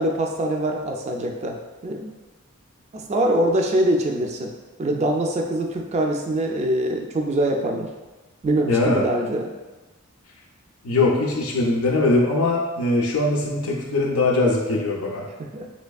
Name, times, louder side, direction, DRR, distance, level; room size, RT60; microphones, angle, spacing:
voice 1, 0.0-1.6 1.8-2.1 2.9-4.5 4.8-7.9 8.4-9.5 15.4-15.7, right 1 dB, 30° right, 2 dB, 0.3 m, -23 dB
voice 2, 8.7-9.1 10.8-15.3, left 2 dB, 90° left, -1 dB, 0.5 m, -21 dB
3.4 x 3.1 x 2.3 m, 1.2 s
head